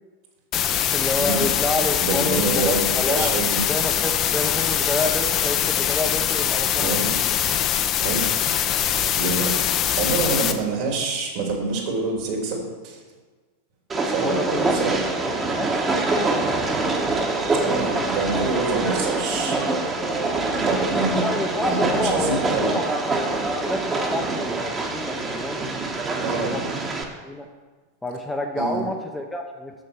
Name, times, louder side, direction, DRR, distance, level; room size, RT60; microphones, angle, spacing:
sound 1, 0.5-10.5, left 10 dB, 40° left, 0.7 m, -23 dB
voice 1, 0.9-3.3 3.7-7.3 14.2-14.9 15.2-16.8 21.1-23.0 23.7-25.7 26.3-26.8 27.2-27.5 28.0-29.7, left 1 dB, 5° left, 2 dB, 0.8 m, -29 dB
voice 2, 2.0-3.6 6.8-7.1 8.0-8.4 9.2-9.5 10.0-13.0 14.0-15.0 17.6-19.6 20.6-21.2 21.6-22.8 26.2-26.6 28.6-28.8, right 3 dB, 50° right, -1 dB, 2.9 m, -26 dB
Train, 13.9-27.0, right 3 dB, 20° right, 1.4 m, -25 dB
6.7 x 6.5 x 7.0 m, 1.4 s
figure-of-eight pair, 90°, 0 cm